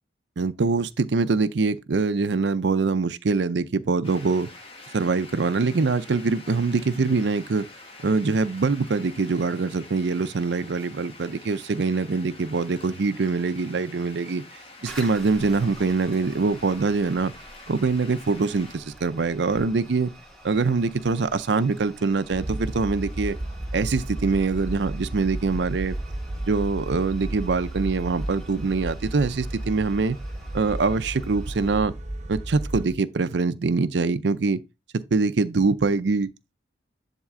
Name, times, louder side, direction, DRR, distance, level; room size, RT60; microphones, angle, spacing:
voice 1, 0.4-4.5 4.9-7.7 8.0-14.4 14.8-17.3 17.7-20.1 20.4-23.4 23.7-26.0 26.5-30.2 30.5-31.9 32.3-34.6 34.9-36.3, right 4 dB, 80° right, 0.5 m, -24 dB
sound 1, 4.0-18.8, left 2 dB, 30° left, 1.3 m, -46 dB
Toilet flush, 14.8-31.9, right 1 dB, 5° left, 1.8 m, -47 dB
sound 2, 22.3-32.9, right 1 dB, 40° right, 1.0 m, -33 dB
10.5 x 3.7 x 3.6 m
head